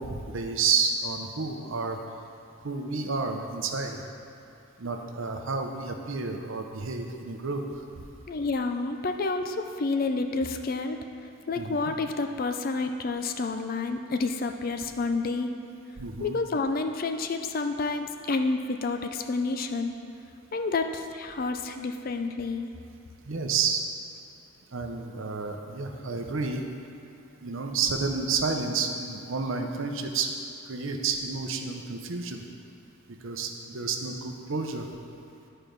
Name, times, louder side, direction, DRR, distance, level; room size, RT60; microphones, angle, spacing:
voice 1, 0.0-2.0 2.6-4.0 4.8-7.6 11.6-11.8 16.0-16.4 23.2-23.8 24.7-26.6 27.4-30.3 30.7-32.4 33.2-34.9, right 4 dB, 60° right, 3 dB, 0.7 m, -30 dB
voice 2, 8.3-11.0 11.5-15.5 16.2-19.9 20.5-22.7, left 3 dB, 40° left, 6 dB, 0.4 m, -29 dB
11.5 x 4.5 x 5.2 m, 2.8 s
head